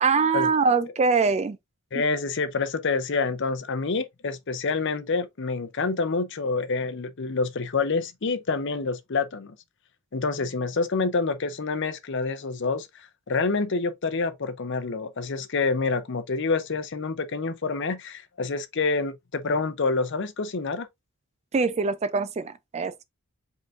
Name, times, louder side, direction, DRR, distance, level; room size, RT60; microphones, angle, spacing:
voice 1, 0.0-1.6 21.5-22.9, right 4 dB, 30° right, 0.4 m, -23 dB
voice 2, 1.9-9.6 10.1-12.9 13.3-20.9, left 4 dB, 55° left, 0.6 m, -27 dB
5.1 x 3.8 x 2.5 m
head